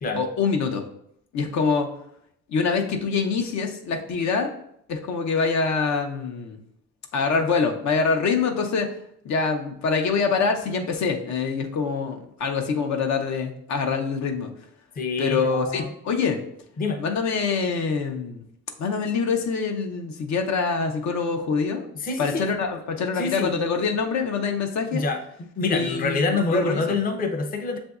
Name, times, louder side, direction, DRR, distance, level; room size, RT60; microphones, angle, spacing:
voice 1, 0.1-0.8 1.3-1.9 2.5-4.5 4.9-6.6 7.1-8.9 9.2-14.5 15.2-16.4 17.0-18.4 18.8-21.9 22.2-25.0 25.7-26.8, left 5 dB, 65° left, 3 dB, 0.7 m, -25 dB
voice 2, 15.0-15.9 16.8-17.0 21.9-22.5 23.1-23.6 24.9-25.2 25.6-27.8, left 3 dB, 30° left, 4 dB, 0.5 m, -26 dB
6.8 x 2.6 x 2.3 m, 0.72 s
cardioid pair, 90°, 30 cm